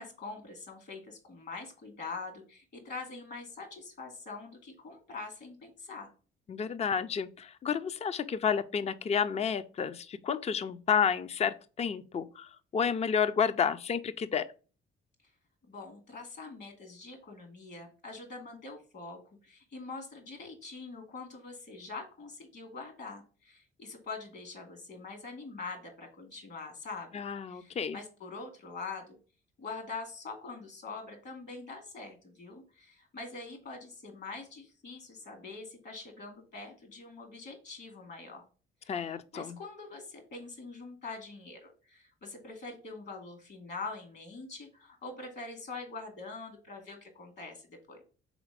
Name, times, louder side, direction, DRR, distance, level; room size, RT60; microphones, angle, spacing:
voice 1, 0.0-6.1 15.7-27.1 27.5-29.2 29.6-38.4 38.8-48.0, left 3 dB, 60° left, 2.4 m, -44 dB
voice 2, 6.5-14.5 27.1-28.0 38.9-39.6, left 7 dB, 35° left, 0.5 m, -31 dB
5.0 x 4.0 x 5.0 m
cardioid pair, 90°, 20 cm